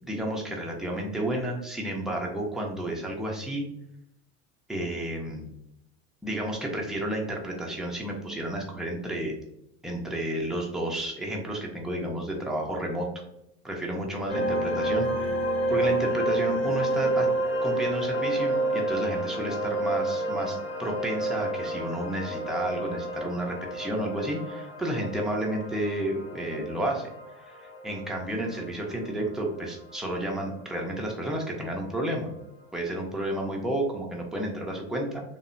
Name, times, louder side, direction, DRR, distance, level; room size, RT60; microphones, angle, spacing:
voice 1, 0.0-3.7 4.7-5.5 6.2-9.3 9.8-13.1 13.6-15.4 15.7-17.3 17.6-27.1 27.4-32.3 32.7-35.2, right 1 dB, ahead, -1 dB, 0.4 m, -31 dB
sound 1, 14.3-31.3, right 1 dB, 35° left, 1.0 m, -30 dB
2.7 x 2.1 x 2.5 m, 0.81 s
supercardioid pair, 105°, 41 cm